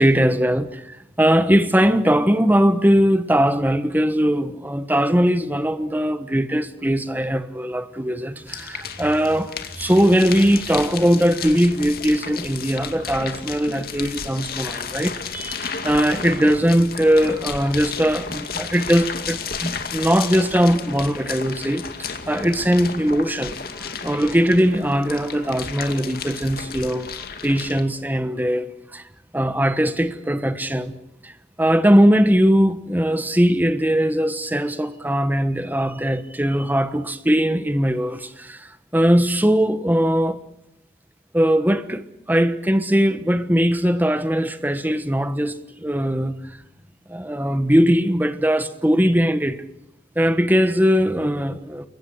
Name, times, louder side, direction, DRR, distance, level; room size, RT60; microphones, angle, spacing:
voice 1, 0.0-27.1 27.4-29.0 29.3-30.9 31.2-31.3 31.6-40.4 41.3-46.6 47.1-49.6 50.1-51.9, equal, 10° right, 1.3 m, -20 dB
sound 1, 8.5-27.8, left 6 dB, 55° left, 2.4 m, -33 dB
28.5 x 23.0 x 6.4 m
head